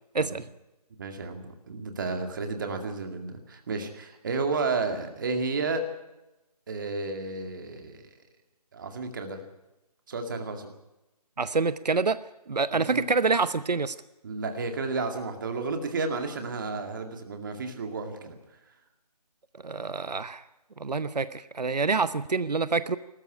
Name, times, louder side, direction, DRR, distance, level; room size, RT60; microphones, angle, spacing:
voice 1, 1.0-5.8 6.7-8.0 8.7-9.4 10.1-10.7 12.7-13.0 14.2-18.4, right 3 dB, 30° right, 5 dB, 2.2 m, -32 dB
voice 2, 11.4-12.2 12.5-13.9 19.6-20.4 20.8-23.0, right 4 dB, 85° right, 14 dB, 0.9 m, -26 dB
20.0 x 13.5 x 9.9 m, 0.98 s
figure-of-eight pair, 170°, 20 cm